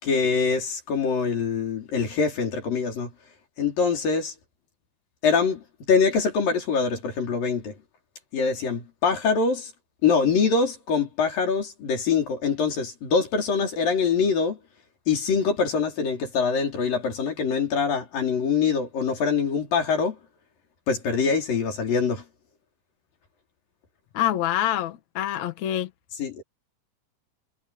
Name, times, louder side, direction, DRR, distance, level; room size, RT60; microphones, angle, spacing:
voice 1, 0.0-3.1 3.6-4.3 5.2-7.7 8.3-9.7 10.0-14.6 15.1-20.2 20.9-22.2 26.2-26.4, left 5 dB, 85° left, 6.2 m, -24 dB
voice 2, 24.1-25.9, left 12 dB, 60° left, 2.5 m, -26 dB
omnidirectional pair, 3.9 m